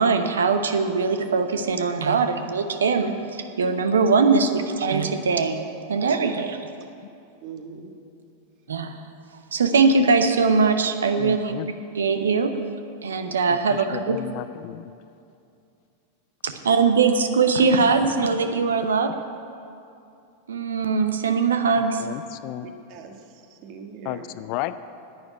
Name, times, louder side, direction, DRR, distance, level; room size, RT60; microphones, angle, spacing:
voice 1, 0.0-5.6 5.9-6.6 8.7-9.0 9.5-11.5 11.9-12.5 13.0-14.2 16.4-19.1 20.5-22.1, right 4 dB, 65° right, 8 dB, 0.9 m, -21 dB
voice 2, 7.4-7.9 22.6-24.3, right 6 dB, 40° right, 5 dB, 1.5 m, -41 dB
voice 3, 11.2-11.7 13.5-14.9 22.0-22.7 24.0-24.9, left 15 dB, 45° left, 14 dB, 0.5 m, -34 dB
11.0 x 9.3 x 9.2 m, 2.6 s
figure-of-eight pair, 90°, 0 cm